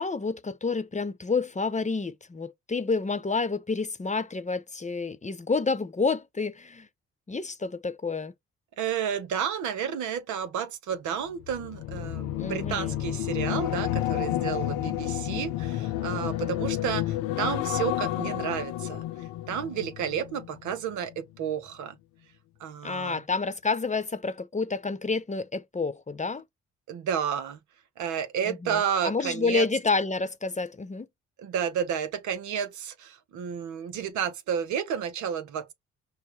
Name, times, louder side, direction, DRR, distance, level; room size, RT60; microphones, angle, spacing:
voice 1, 0.0-6.9 7.3-8.3 12.4-13.0 22.8-26.4 28.5-31.1, left 4 dB, 20° left, 1.0 m, -29 dB
voice 2, 8.8-22.0 22.6-23.2 26.9-27.6 28.0-29.7 31.4-35.7, right 8 dB, 65° right, 0.9 m, -31 dB
sound 1, 11.4-20.8 21.1-21.4, left 14 dB, 70° left, 0.6 m, -31 dB
6.3 x 2.2 x 3.5 m
hypercardioid pair, 45°, 32 cm